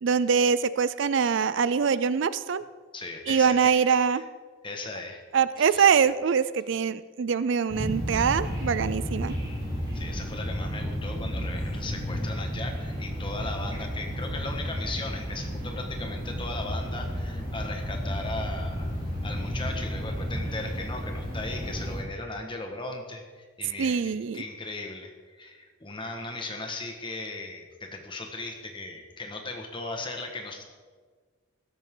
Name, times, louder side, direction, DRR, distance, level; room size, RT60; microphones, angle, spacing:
voice 1, 0.0-2.6 3.3-4.2 5.3-9.4 23.8-24.4, right 6 dB, 60° right, 15 dB, 0.4 m, -24 dB
voice 2, 2.9-3.6 4.1-4.2 4.6-5.2 5.6-5.9 9.9-18.9 19.2-30.6, left 2 dB, 25° left, 3 dB, 1.5 m, -37 dB
sound 1, 7.7-22.0, equal, 20° right, 3.3 m, -32 dB
16.0 x 13.0 x 3.8 m, 1.5 s
head